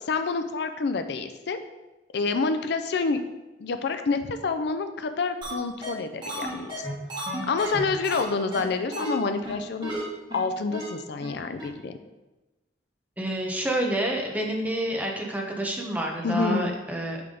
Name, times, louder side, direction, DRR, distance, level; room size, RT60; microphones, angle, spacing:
voice 1, 0.1-1.6 2.1-3.2 3.6-6.9 7.5-9.9 10.3-11.9 16.2-16.7, left 4 dB, 65° left, 9 dB, 0.4 m, -28 dB
sound 1, 5.4-5.5 5.8-5.9 6.2-8.2 8.5-8.6 8.9-9.1 9.4-9.5 9.8-10.0 10.3-10.4 10.7-10.9 11.2-11.3 11.6-11.7, right 1 dB, 30° right, 1.6 m, -33 dB
voice 2, 13.2-17.2, right 1 dB, 10° right, 0 dB, 0.9 m, -28 dB
8.7 x 3.5 x 3.9 m, 1.1 s
head